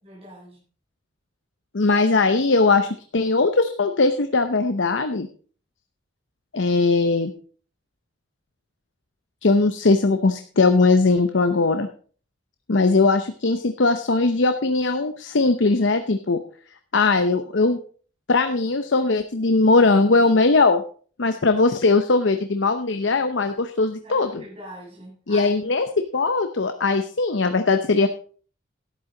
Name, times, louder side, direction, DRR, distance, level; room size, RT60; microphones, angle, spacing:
voice 1, 0.0-0.6 24.0-25.6, equal, 30° right, -5 dB, 7.1 m, -42 dB
voice 2, 1.7-5.3 6.5-7.3 9.4-11.9 12.7-16.4 16.9-17.8 18.3-20.8 21.2-24.4 25.3-25.9 26.1-28.1, left 3 dB, 75° left, 8 dB, 0.8 m, -20 dB
12.5 x 11.0 x 3.9 m, 0.43 s
head